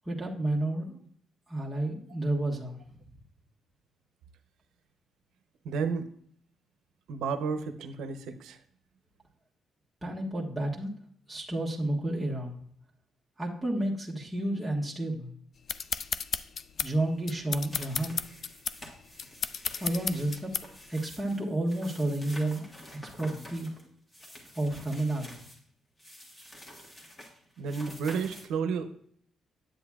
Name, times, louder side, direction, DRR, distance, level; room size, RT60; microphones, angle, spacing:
voice 1, 0.1-1.0 1.5-2.8 10.0-10.9 11.3-12.5 13.4-15.3 16.8-18.2 19.8-20.5 20.9-23.7 24.5-25.3, right 1 dB, 5° right, -4 dB, 1.4 m, -31 dB
voice 2, 5.6-6.1 7.1-8.6 27.6-29.0, right 5 dB, 85° right, 8 dB, 0.7 m, -32 dB
sound 1, 15.7-20.9, left 6 dB, 55° left, 0.3 m, -34 dB
sound 2, 17.7-25.6 26.0-28.5, equal, 25° left, 1.5 m, -49 dB
8.5 x 7.8 x 2.4 m, 0.62 s
cardioid pair, 90°, 0 cm